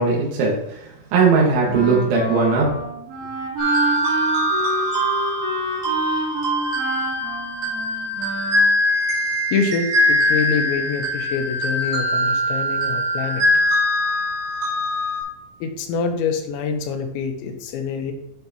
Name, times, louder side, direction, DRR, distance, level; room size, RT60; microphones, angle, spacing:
voice 1, 0.0-2.7, right 4 dB, 90° right, -3 dB, 4.1 m, -19 dB
Wind instrument woodwind instrument, 1.6-8.7, right 1 dB, 60° right, 4.3 m, -28 dB
sound 1, 3.6-15.2, equal, 45° right, 4.4 m, -22 dB
voice 2, 9.5-13.4 15.6-18.1, left 5 dB, 85° left, 5 dB, 3.1 m, -25 dB
12.0 x 5.9 x 2.9 m, 0.79 s
omnidirectional pair, 5.2 m